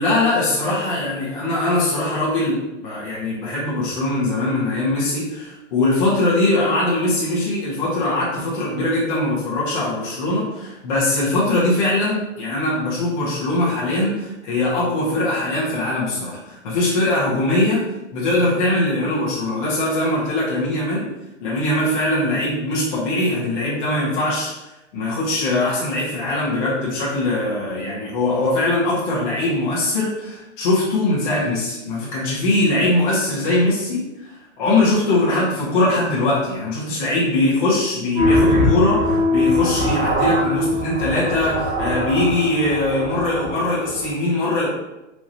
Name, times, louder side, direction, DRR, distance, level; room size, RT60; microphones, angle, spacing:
voice 1, 0.0-17.8 18.1-21.1 21.4-24.5 24.9-44.7, left 2 dB, 40° left, -7 dB, 1.5 m, -21 dB
sound 1, 38.1-44.1, left 1 dB, 30° right, 1.4 m, -21 dB
4.7 x 3.0 x 2.9 m, 0.98 s
hypercardioid pair, 160°, 38 cm